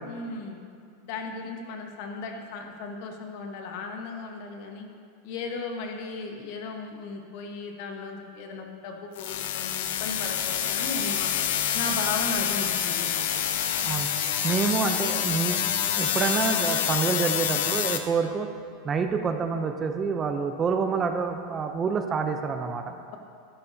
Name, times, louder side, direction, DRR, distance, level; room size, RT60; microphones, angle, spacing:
voice 1, 0.0-0.6 1.0-4.9 5.2-11.3 11.7-13.2 22.8-23.2, left 3 dB, 55° left, 3 dB, 1.3 m, -36 dB
sound 1, 9.2-18.0, left 9 dB, 75° left, 0.7 m, -27 dB
voice 2, 14.4-15.6 16.0-18.5 18.8-22.8, right 5 dB, 20° right, 6 dB, 0.6 m, -27 dB
12.0 x 11.5 x 2.8 m, 2.3 s
supercardioid pair, 150°, 0 cm